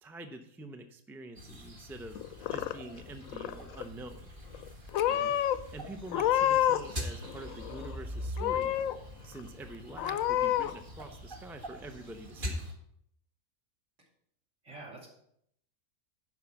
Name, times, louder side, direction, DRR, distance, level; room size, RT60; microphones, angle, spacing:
voice 1, 0.0-2.2 2.5-4.3 5.7-8.9 9.2-12.6, right 2 dB, 5° right, 6 dB, 0.3 m, -46 dB
sound 1, 1.4-12.7, equal, 35° right, 1.8 m, -43 dB
Purr / Meow, 2.2-3.0 3.3-3.9 4.5-4.7 4.9-5.6 6.1-6.9 7.2-8.0 8.4-9.0 9.4-9.5 10.0-10.7, left 12 dB, 75° left, 1.0 m, -29 dB
voice 2, 14.6-15.1, right 3 dB, 55° right, -3 dB, 3.2 m, -46 dB
11.0 x 5.0 x 7.0 m, 0.71 s
omnidirectional pair, 1.5 m